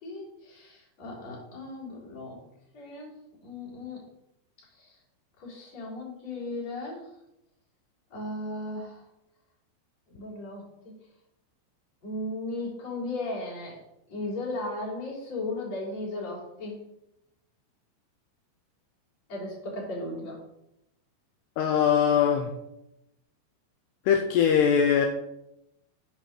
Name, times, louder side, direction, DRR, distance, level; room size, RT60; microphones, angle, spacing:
voice 1, 0.0-2.4 2.7-3.2 3.4-4.0 4.8-4.9 5.4-7.1 8.1-9.0 10.1-11.0 12.0-13.8 14.1-16.8 19.3-20.4, left 2 dB, 35° left, -5 dB, 4.2 m, -36 dB
voice 2, 21.6-22.5 24.1-25.1, left 8 dB, 85° left, 3 dB, 2.4 m, -21 dB
8.8 x 5.7 x 6.6 m, 0.83 s
omnidirectional pair, 5.7 m